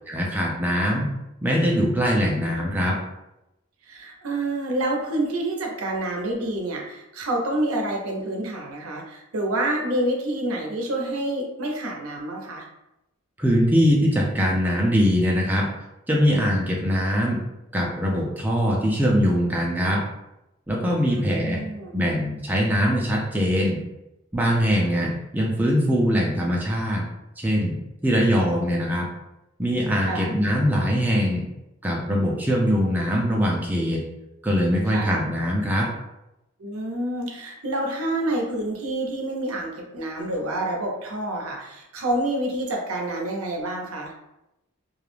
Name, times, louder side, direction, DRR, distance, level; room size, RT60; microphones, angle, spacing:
voice 1, 0.1-1.1 1.4-3.0 13.4-15.7 16.1-17.4 17.7-20.0 20.7-21.6 21.9-23.8 24.3-27.0 27.4-27.8 28.0-29.1 29.6-31.5 31.8-34.0 34.4-35.9, equal, 10° right, -3 dB, 0.3 m, -22 dB
voice 2, 3.9-12.7 21.1-22.0 24.7-25.1 30.0-30.3 34.9-35.1 36.6-44.1, right 1 dB, 85° right, 1 dB, 0.6 m, -28 dB
2.3 x 2.0 x 3.1 m, 0.90 s
head